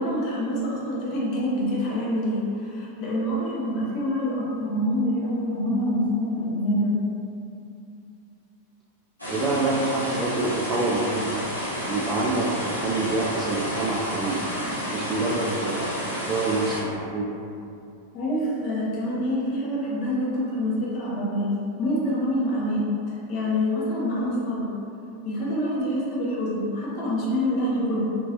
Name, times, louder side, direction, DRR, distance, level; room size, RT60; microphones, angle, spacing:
voice 1, 0.0-7.0 18.1-24.7 25.2-28.0, equal, 40° left, -6 dB, 0.8 m, -26 dB
sound 1, 9.2-16.8, equal, 85° left, 0.9 m, -30 dB
voice 2, 9.3-11.3 11.8-14.5 14.9-17.3, right 2 dB, 20° right, -4 dB, 0.4 m, -27 dB
2.8 x 2.5 x 3.1 m, 2.6 s
figure-of-eight pair, 90°, 0 cm